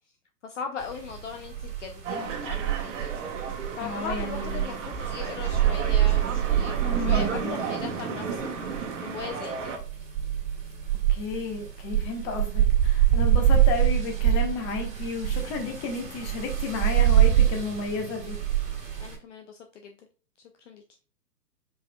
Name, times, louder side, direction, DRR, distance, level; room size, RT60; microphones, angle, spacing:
voice 1, 0.4-9.7 19.0-20.0 20.7-20.8, left 6 dB, 45° left, 5 dB, 0.7 m, -39 dB
sound 1, 0.8-19.2, right 11 dB, 20° right, 2.2 m, -26 dB
sound 2, 2.0-9.8, right 5 dB, 45° right, 1.3 m, -34 dB
voice 2, 3.8-4.8 6.8-7.6 11.1-18.4, left 4 dB, 20° left, 4 dB, 1.0 m, -32 dB
4.8 x 4.8 x 2.2 m, 0.39 s
hypercardioid pair, 130°, 49 cm